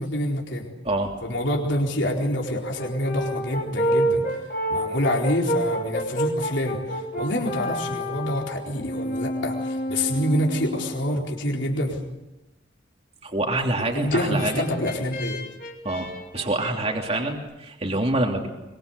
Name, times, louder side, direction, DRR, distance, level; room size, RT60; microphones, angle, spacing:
voice 1, 0.0-0.7 1.2-4.2 4.7-12.0 13.9-15.4, left 1 dB, 70° left, 0 dB, 4.3 m, -26 dB
Brass instrument, 2.8-11.1 13.6-17.3, equal, 50° left, 4.4 m, -29 dB
voice 2, 13.2-14.5 15.8-16.1 16.3-18.5, right 2 dB, 35° right, 1 dB, 3.1 m, -26 dB
24.0 x 24.0 x 8.2 m, 1.0 s
head